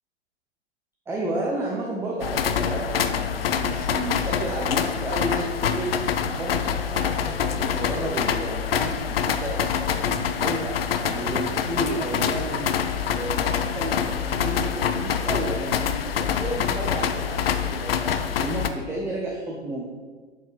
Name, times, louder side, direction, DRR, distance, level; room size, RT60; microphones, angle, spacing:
voice 1, 1.1-5.9 6.2-12.7 13.1-18.0 18.4-19.8, right 2 dB, 5° right, -2 dB, 0.6 m, -32 dB
sound 1, 2.2-18.7, left 8 dB, 55° left, 0.7 m, -26 dB
8.1 x 6.3 x 4.0 m, 1.5 s
figure-of-eight pair, 110°, 35 cm